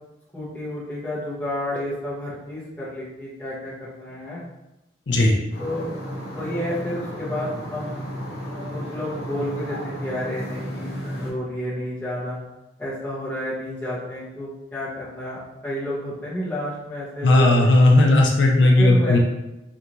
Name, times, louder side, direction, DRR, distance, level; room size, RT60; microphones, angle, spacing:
voice 1, 0.3-4.4 5.6-5.8 6.3-8.0 8.7-12.4 12.8-17.8 18.6-19.2, left 1 dB, 10° left, -9 dB, 1.1 m, -31 dB
sound 1, 5.5-11.3, equal, 55° left, 0.9 m, -33 dB
voice 2, 17.2-19.2, left 2 dB, 80° left, 1 dB, 0.5 m, -16 dB
3.3 x 2.6 x 3.0 m, 0.95 s
head